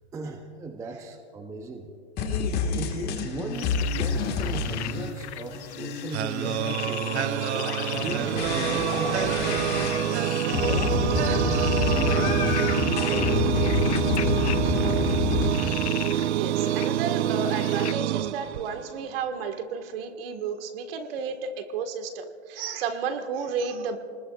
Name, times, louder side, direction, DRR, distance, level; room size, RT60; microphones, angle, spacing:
voice 1, 0.1-1.9 2.8-7.1 7.9-9.7 10.5-14.0 14.8-15.1, right 3 dB, 10° right, 5 dB, 0.7 m, -37 dB
sound 1, 2.2-5.1 5.5-15.5, left 4 dB, 30° left, 1.7 m, -28 dB
sound 2, 3.5-17.9, left 13 dB, 70° left, 0.7 m, -38 dB
sound 3, 6.1-19.0, right 11 dB, 75° right, 0.5 m, -26 dB
voice 2, 16.3-24.0, right 6 dB, 55° right, 6 dB, 1.7 m, -32 dB
29.0 x 20.0 x 2.4 m, 2.2 s
hypercardioid pair, 140°, 34 cm